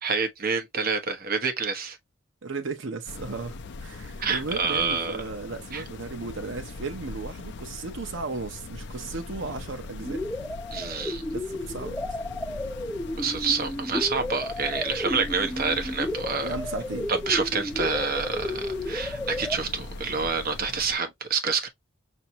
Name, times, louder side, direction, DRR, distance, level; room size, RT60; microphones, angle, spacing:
voice 1, 0.0-2.0 4.2-5.2 5.7-5.8 10.7-11.2 13.2-16.5 17.1-21.7, right 5 dB, 50° right, 1.1 m, -28 dB
voice 2, 2.4-10.2 11.3-12.0 16.4-17.1, right 3 dB, 70° right, 0.8 m, -35 dB
sound 1, 3.1-21.0, left 3 dB, 60° left, 0.5 m, -41 dB
sound 2, 10.0-19.6, left 1 dB, 5° left, 0.4 m, -33 dB
5.8 x 2.8 x 2.8 m
head